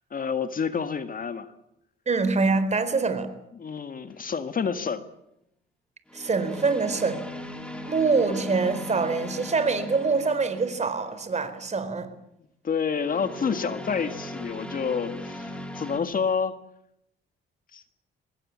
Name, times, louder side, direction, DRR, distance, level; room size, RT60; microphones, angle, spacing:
voice 1, 0.1-1.5 3.6-5.1 12.6-16.6 17.7-17.8, left 6 dB, 45° left, 10 dB, 1.8 m, -28 dB
voice 2, 2.1-3.3 6.1-7.2 7.9-12.1, right 4 dB, 35° right, 11 dB, 4.4 m, -25 dB
sound 1, 4.1-4.4 6.1-11.2 12.9-16.0, left 1 dB, 5° left, 4.5 m, -38 dB
25.0 x 20.5 x 8.6 m, 0.78 s
cardioid pair, 90°, 20 cm